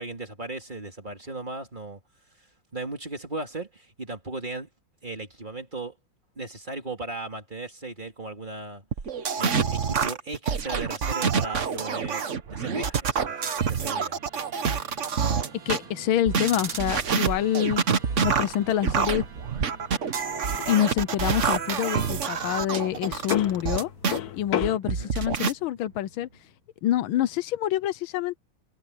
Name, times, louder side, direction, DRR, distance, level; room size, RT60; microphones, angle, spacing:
voice 1, 0.0-2.0 2.7-4.7 5.0-5.9 6.4-8.8 9.4-14.2 24.8-25.1, right 2 dB, 25° right, 2.9 m, -36 dB
sound 1, 8.9-15.8 16.3-24.2 24.6-25.5, right 6 dB, 45° right, 1.2 m, -27 dB
Musical instrument, 11.4-26.7, right 5 dB, 75° right, 3.0 m, -49 dB
voice 2, 15.7-17.8 18.2-19.2 20.7-23.9 24.3-26.3 26.8-28.4, left 11 dB, 80° left, 1.5 m, -26 dB
sound 2, 16.3-24.8, left 10 dB, 55° left, 1.3 m, -35 dB
omnidirectional pair, 2.2 m